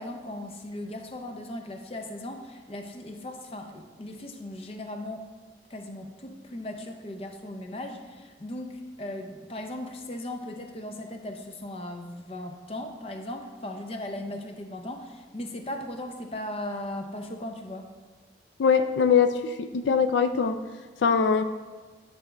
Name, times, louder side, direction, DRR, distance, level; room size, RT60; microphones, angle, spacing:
voice 1, 0.0-5.2 5.7-17.9, left 1 dB, 35° left, 5 dB, 0.5 m, -37 dB
voice 2, 18.6-20.6 21.0-21.4, left 6 dB, 90° left, 9 dB, 0.4 m, -22 dB
8.8 x 4.1 x 3.3 m, 1.4 s
head